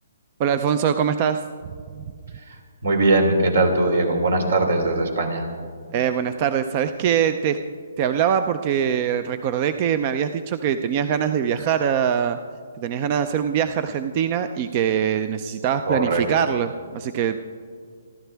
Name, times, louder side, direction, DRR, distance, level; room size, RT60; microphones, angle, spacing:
voice 1, 0.4-1.4 2.0-2.1 5.9-7.6 8.0-12.4 12.8-17.4, right 8 dB, 30° right, 10 dB, 0.5 m, -23 dB
voice 2, 2.8-5.5 15.9-16.2, right 2 dB, 75° right, 4 dB, 3.3 m, -20 dB
28.5 x 12.0 x 3.4 m, 2.1 s
hypercardioid pair, 160°, 0 cm